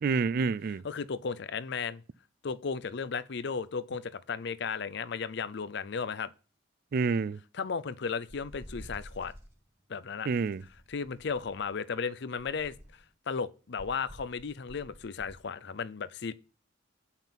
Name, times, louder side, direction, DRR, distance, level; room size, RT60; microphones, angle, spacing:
voice 1, 0.0-0.8 6.9-7.4 10.3-10.6, right 4 dB, 50° right, 0.3 m, -28 dB
voice 2, 0.8-2.0 2.4-6.3 7.6-9.3 9.9-10.3 10.9-12.7 13.3-16.3, left 5 dB, 60° left, 0.5 m, -35 dB
sound 1, 8.3-9.5 10.5-11.7 12.4-13.1 13.8-15.4, equal, 15° right, 1.8 m, -49 dB
8.9 x 5.7 x 5.8 m
head